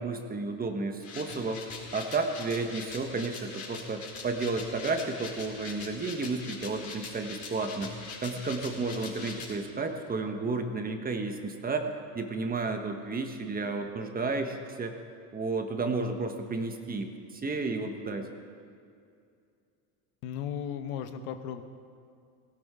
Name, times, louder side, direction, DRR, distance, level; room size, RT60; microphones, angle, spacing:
voice 1, 0.0-1.7 1.9-7.9 8.2-15.0 15.3-17.1 17.4-18.3, right 3 dB, 20° right, 5 dB, 1.4 m, -32 dB
sound 1, 1.0-9.5, left 4 dB, 40° left, 4.5 m, -42 dB
voice 2, 20.2-21.6, left 8 dB, 75° left, 8 dB, 1.2 m, -35 dB
18.0 x 17.5 x 3.8 m, 2.4 s
supercardioid pair, 125°, 43 cm